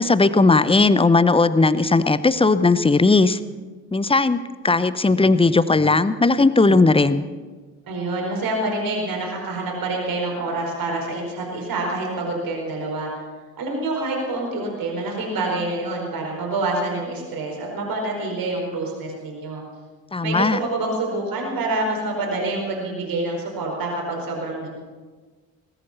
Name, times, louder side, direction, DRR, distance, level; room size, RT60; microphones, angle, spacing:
voice 1, 0.0-3.4 3.9-4.4 4.6-7.3 20.1-20.6, left 3 dB, 15° left, 15 dB, 0.8 m, -17 dB
voice 2, 7.9-13.1 13.6-19.6 20.2-24.7, right 2 dB, 55° right, -1 dB, 4.8 m, -27 dB
20.0 x 10.0 x 7.1 m, 1.4 s
figure-of-eight pair, 45°, 42 cm